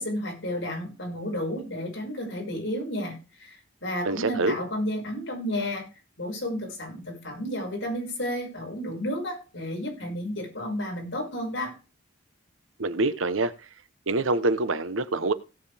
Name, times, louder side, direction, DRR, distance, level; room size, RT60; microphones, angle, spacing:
voice 1, 0.0-5.8 6.2-11.7, equal, 65° left, 5.7 m, -32 dB
voice 2, 4.0-4.6 12.8-13.5 14.1-15.3, right 2 dB, 80° right, 1.0 m, -25 dB
17.0 x 7.5 x 3.4 m
head